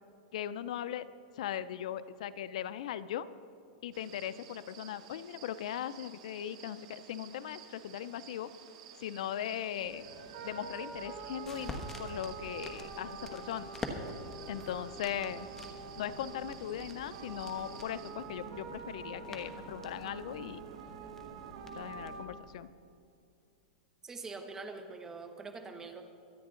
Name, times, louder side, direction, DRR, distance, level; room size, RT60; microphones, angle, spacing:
voice 1, 0.3-1.1 1.3-3.3 3.8-8.5 9.0-10.1 10.4-13.7 14.5-15.5 16.0-20.6 21.8-22.7, left 10 dB, 65° left, 15 dB, 0.5 m, -39 dB
sound 1, 3.9-18.1, right 8 dB, 65° right, 2.0 m, -54 dB
sound 2, 9.8-22.3, right 5 dB, 50° right, 1.4 m, -46 dB
sound 3, 11.0-22.2, left 2 dB, 10° left, 1.1 m, -48 dB
voice 2, 24.0-26.0, right 4 dB, 15° right, 6 dB, 1.0 m, -44 dB
24.0 x 9.7 x 3.8 m, 2.5 s
supercardioid pair, 155°, 4 cm